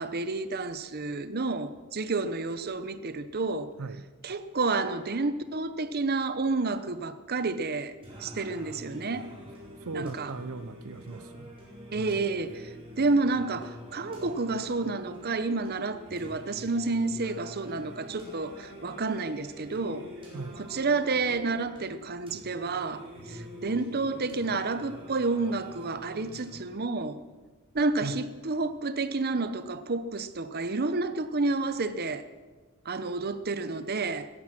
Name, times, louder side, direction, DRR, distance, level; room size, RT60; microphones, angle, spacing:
voice 1, 0.0-3.7 4.2-9.3 9.9-10.3 11.9-12.7 13.0-20.1 20.5-27.2 27.7-32.3 32.9-34.3, right 3 dB, 45° right, 12 dB, 0.9 m, -30 dB
Singing, 8.0-27.0, equal, 25° right, 5.0 m, -46 dB
voice 2, 9.8-11.5 11.9-12.2 20.3-20.6 28.0-28.2, right 3 dB, 75° right, 12 dB, 0.7 m, -38 dB
17.0 x 14.0 x 6.0 m, 1.3 s
head